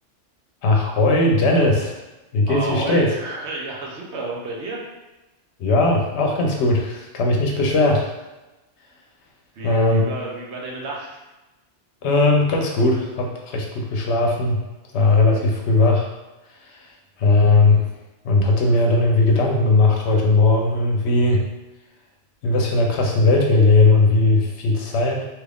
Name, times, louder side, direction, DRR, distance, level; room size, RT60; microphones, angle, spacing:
voice 1, 0.6-1.9 2.3-3.1 5.6-8.1 9.6-10.1 12.0-14.6 14.9-16.1 16.6-16.9 17.2-17.8 18.2-21.5 22.4-25.3, left 2 dB, 70° left, 1 dB, 0.9 m, -18 dB
voice 2, 2.4-4.8 9.5-11.2, right 2 dB, 70° right, -2 dB, 1.0 m, -31 dB
3.0 x 2.4 x 3.4 m, 1.1 s
omnidirectional pair, 1.2 m